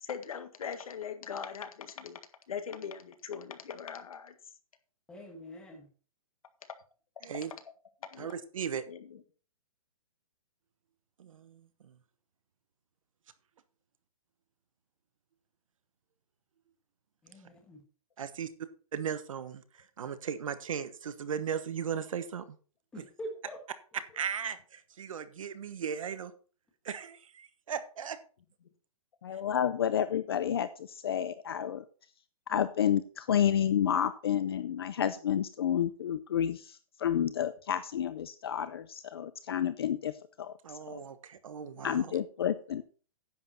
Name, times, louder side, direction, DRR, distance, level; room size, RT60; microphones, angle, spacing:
voice 1, 0.0-2.2 2.5-4.3 8.0-8.3 8.9-9.2 41.7-42.1, left 7 dB, 75° left, 9 dB, 1.7 m, -41 dB
voice 2, 5.1-5.9 17.2-17.8 22.9-23.6, equal, 5° left, 1 dB, 1.4 m, -44 dB
voice 3, 7.2-7.5 8.2-8.8 11.2-12.0 18.2-18.5 18.9-22.6 24.1-26.3 26.8-28.2 40.6-42.2, right 7 dB, 65° right, 12 dB, 1.2 m, -37 dB
voice 4, 29.2-31.8 32.5-40.1 40.4-40.6 40.9-41.0 41.8-42.8, left 9 dB, 40° left, 13 dB, 0.5 m, -30 dB
10.5 x 8.0 x 4.2 m, 0.39 s
hypercardioid pair, 180°, 18 cm